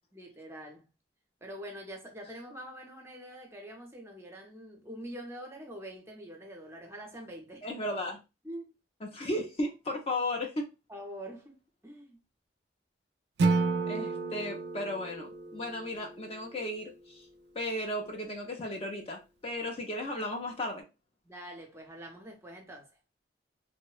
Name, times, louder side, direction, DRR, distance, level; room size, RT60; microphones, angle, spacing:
voice 1, 0.1-0.9 1.4-7.8 8.4-8.7 10.9-11.6 11.8-12.2 21.2-22.9, equal, 15° right, 0.6 m, -45 dB
voice 2, 7.6-8.2 9.0-10.7 13.9-17.3 17.5-20.8, left 1 dB, 35° left, 0.4 m, -35 dB
Acoustic guitar / Strum, 13.4-16.5, right 3 dB, 65° right, 0.3 m, -31 dB
2.6 x 2.0 x 2.3 m
head